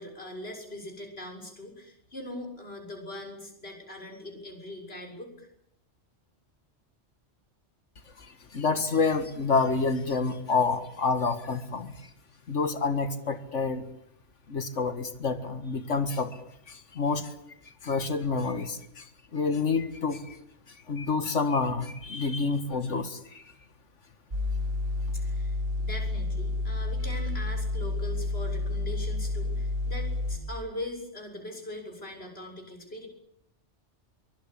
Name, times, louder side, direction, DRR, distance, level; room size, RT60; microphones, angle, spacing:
voice 1, 0.0-5.5 25.1-33.1, left 1 dB, 55° left, 2 dB, 7.1 m, -41 dB
voice 2, 8.2-12.1 12.5-13.8 14.5-16.4 16.7-17.3 17.7-20.4 20.7-23.5, left 4 dB, 90° left, 10 dB, 2.2 m, -28 dB
sound 1, 24.3-30.4, left 2 dB, 65° right, 7.4 m, -30 dB
24.0 x 24.0 x 8.7 m, 0.73 s
omnidirectional pair, 1.2 m